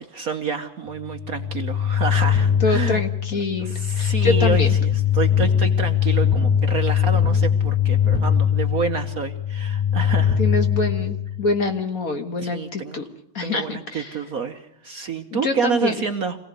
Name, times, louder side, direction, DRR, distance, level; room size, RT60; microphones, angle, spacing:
voice 1, 0.0-3.0 3.6-10.4 12.4-13.0 13.4-16.4, right 6 dB, 50° right, 6 dB, 1.2 m, -28 dB
sound 1, 1.0-11.6, left 8 dB, 20° left, 7.5 m, -21 dB
voice 2, 2.6-4.8 10.4-13.0 13.3-14.2 15.3-16.0, left 3 dB, 45° left, 6 dB, 1.7 m, -25 dB
26.5 x 17.5 x 8.1 m, 0.77 s
omnidirectional pair, 2.3 m